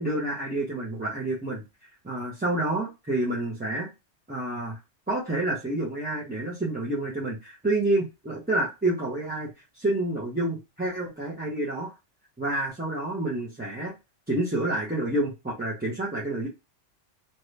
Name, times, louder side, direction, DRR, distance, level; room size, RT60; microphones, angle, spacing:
voice 1, 0.0-1.6 2.0-3.9 4.3-4.8 5.1-9.5 9.7-11.9 12.4-13.9 14.3-16.5, right 2 dB, 10° right, -6 dB, 0.7 m, -28 dB
2.8 x 2.5 x 3.2 m, 0.24 s
omnidirectional pair, 1.2 m